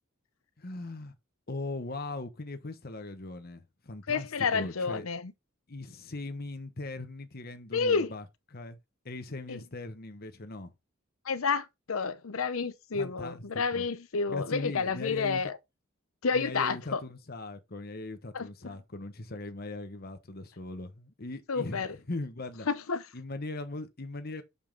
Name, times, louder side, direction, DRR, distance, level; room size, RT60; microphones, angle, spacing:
voice 1, 0.6-1.1 1.5-4.3 4.5-5.0 5.7-8.2 8.5-8.8 9.0-10.7 12.9-13.8 14.3-15.4 16.3-22.7 23.1-24.4, left 2 dB, 50° left, 1.1 m, -39 dB
voice 2, 4.1-5.3 7.7-8.1 9.5-9.6 11.2-15.6 16.2-17.0 18.3-18.8 21.5-21.9 22.7-23.0, left 5 dB, 90° left, 0.7 m, -30 dB
6.9 x 5.5 x 3.8 m
head